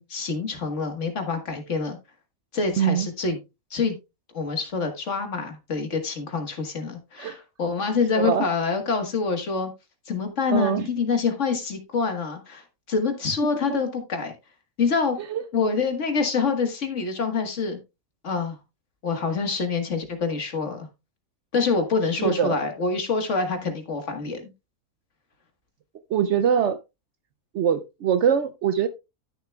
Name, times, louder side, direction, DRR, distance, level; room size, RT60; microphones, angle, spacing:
voice 1, 0.0-2.0 2.5-3.4 3.7-4.0 4.3-9.7 10.1-14.3 14.8-15.2 15.5-17.8 18.2-18.6 19.0-20.9 21.5-24.5, left 4 dB, 55° left, 1.8 m, -26 dB
voice 2, 2.8-3.1 7.2-7.4 8.2-8.5 10.5-10.9 15.3-15.4 22.2-22.6 26.1-26.8 27.5-28.9, right 8 dB, 65° right, 0.8 m, -23 dB
12.5 x 6.9 x 2.3 m
omnidirectional pair, 1.5 m